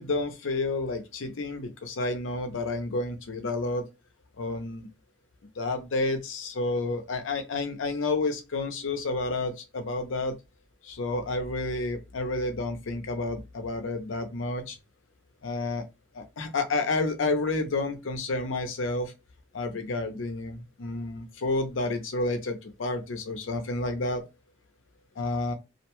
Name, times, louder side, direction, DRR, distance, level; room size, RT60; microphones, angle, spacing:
voice 1, 0.0-3.9 4.4-4.9 5.6-10.4 10.8-14.8 15.4-15.8 16.1-19.1 19.5-24.2 25.2-25.5, left 2 dB, 85° left, 0.6 m, -30 dB
2.5 x 2.1 x 2.9 m
head